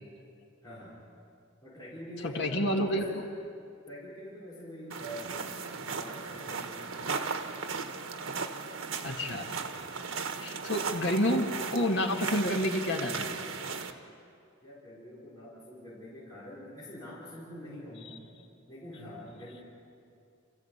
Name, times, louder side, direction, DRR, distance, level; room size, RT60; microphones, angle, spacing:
voice 1, 0.6-1.0 1.6-3.2 3.8-5.3 5.9-7.4 14.6-18.2 18.7-19.6, equal, 20° left, -10 dB, 5.1 m, -45 dB
voice 2, 2.2-3.1 9.0-9.5 10.4-13.4, left 1 dB, 60° left, 3 dB, 2.0 m, -29 dB
sound 1, 4.9-13.9, right 5 dB, 90° right, 1.4 m, -36 dB
27.5 x 15.0 x 8.2 m, 2.5 s
head